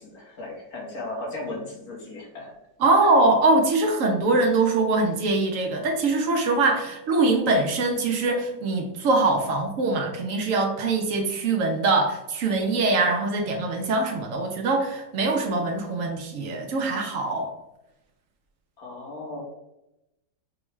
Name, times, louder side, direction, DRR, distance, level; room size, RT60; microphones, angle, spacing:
voice 1, 0.0-2.5 18.8-19.4, left 2 dB, 60° left, -3 dB, 1.6 m, -36 dB
voice 2, 2.8-17.5, right 3 dB, 65° right, 2 dB, 0.8 m, -23 dB
6.1 x 2.3 x 3.1 m, 0.90 s
omnidirectional pair, 1.9 m